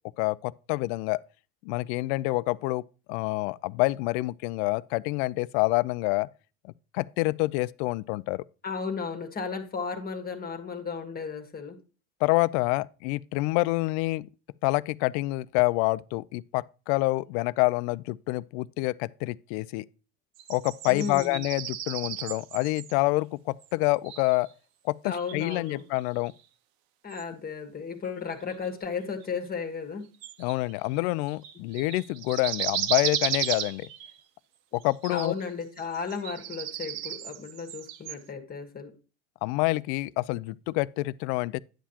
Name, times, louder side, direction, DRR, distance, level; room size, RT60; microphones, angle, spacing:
voice 1, 0.2-1.2 1.6-2.8 3.1-6.3 6.9-8.4 12.2-14.3 14.6-19.9 20.5-24.5 24.8-26.3 30.4-33.9 34.7-35.3 39.4-41.6, left 21 dB, 65° left, 0.5 m, -27 dB
voice 2, 8.6-11.8 20.9-21.4 25.0-25.8 27.0-30.0 35.1-38.9, left 5 dB, 25° left, 1.6 m, -34 dB
sound 1, 20.4-23.0 23.6-23.7 24.0-24.5 25.2-26.4 27.1-27.2 28.6-28.7 29.2-29.3 30.2-30.9 31.3-34.2 34.7-35.4 35.8-38.3, right 11 dB, 60° right, 1.0 m, -35 dB
10.0 x 7.3 x 2.9 m
supercardioid pair, 105°, 37 cm